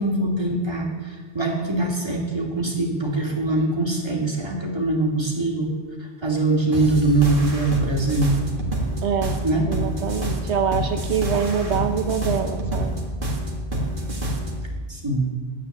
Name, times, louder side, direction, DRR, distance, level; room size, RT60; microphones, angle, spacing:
voice 1, 0.0-5.7 6.0-8.4 9.4-9.7 14.9-15.3, right 2 dB, 25° right, -1 dB, 2.5 m, -23 dB
sound 1, 6.7-14.6, equal, 50° right, 2.0 m, -27 dB
voice 2, 9.0-9.4 9.7-13.0, right 7 dB, 75° right, 6 dB, 1.1 m, -25 dB
10.5 x 8.5 x 9.7 m, 1.5 s
omnidirectional pair, 1.1 m